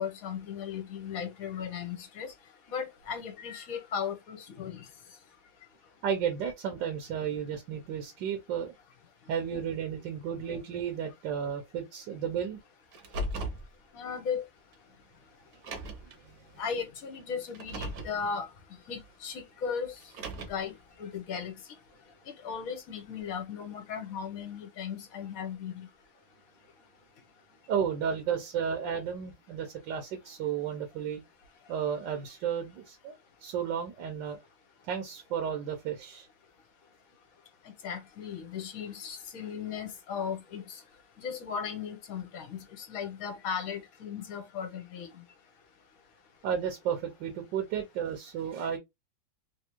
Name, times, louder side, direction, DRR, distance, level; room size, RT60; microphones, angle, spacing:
voice 1, 0.0-2.3 2.7-4.8 6.4-6.5 13.9-14.5 16.6-18.5 18.9-19.9 20.5-20.7 21.0-21.5 22.4-25.9 37.8-40.6 41.2-45.1, left 7 dB, 60° left, 1.0 m, -36 dB
voice 2, 6.0-8.7 9.3-12.6 27.7-31.2 31.7-33.1 33.4-34.4 34.8-36.3 46.4-48.8, right 8 dB, 75° right, 1.3 m, -33 dB
Car, 12.9-13.7 14.7-14.8 15.5-16.1 17.5-18.2 20.0-20.7, right 1 dB, 60° right, 1.1 m, -37 dB
3.3 x 2.6 x 2.9 m
omnidirectional pair, 2.0 m